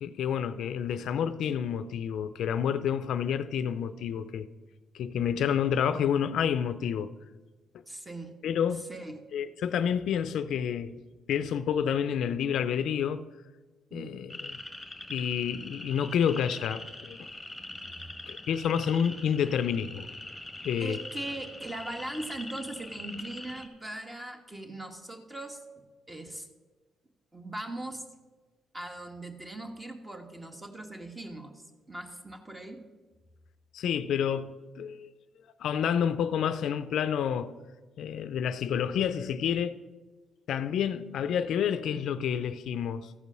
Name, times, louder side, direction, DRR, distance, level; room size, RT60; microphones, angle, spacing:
voice 1, 0.0-4.5 4.9-7.1 8.4-8.8 9.3-11.0 11.3-13.3 13.9-14.6 15.1-17.3 18.3-20.1 20.6-21.0 33.7-35.1 35.6-37.5 38.0-39.8 40.5-43.1, left 8 dB, 75° left, 0.4 m, -29 dB
voice 2, 7.9-8.4 8.9-9.2 13.9-14.3 17.6-18.1 20.8-26.5 27.3-28.0 28.7-32.8, right 1 dB, 20° right, 1.3 m, -40 dB
sound 1, 14.3-23.7, left 2 dB, 5° left, 1.4 m, -43 dB
14.0 x 5.3 x 6.2 m
cardioid pair, 90°, 0 cm